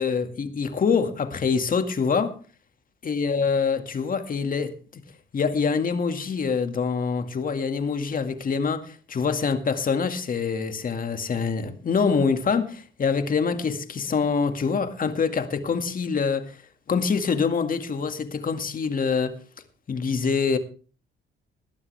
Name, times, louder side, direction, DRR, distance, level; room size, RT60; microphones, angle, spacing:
voice 1, 0.0-2.4 3.0-5.0 5.3-16.6 16.9-19.4 19.9-20.6, left 5 dB, 45° left, 2.1 m, -25 dB
20.0 x 12.0 x 3.4 m
cardioid pair, 90°, 20 cm